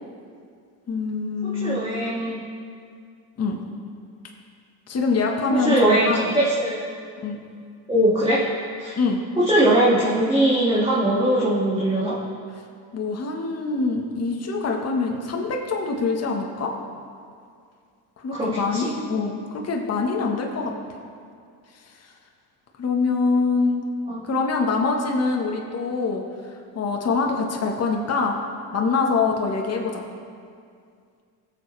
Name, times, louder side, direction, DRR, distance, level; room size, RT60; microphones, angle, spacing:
voice 1, 0.9-1.8 3.4-3.6 4.9-6.3 7.2-7.4 9.0-9.2 12.9-16.8 18.2-20.7 22.8-23.8 24.2-26.2 26.5-28.4 28.7-30.0, left 4 dB, 30° left, 1 dB, 1.5 m, -24 dB
voice 2, 1.6-2.4 5.5-6.9 7.9-8.4 8.8-8.9 9.4-12.2 18.3-18.8 24.1-24.2, right 1 dB, 10° right, -9 dB, 2.3 m, -21 dB
17.5 x 7.4 x 3.4 m, 2.2 s
supercardioid pair, 95°, 49 cm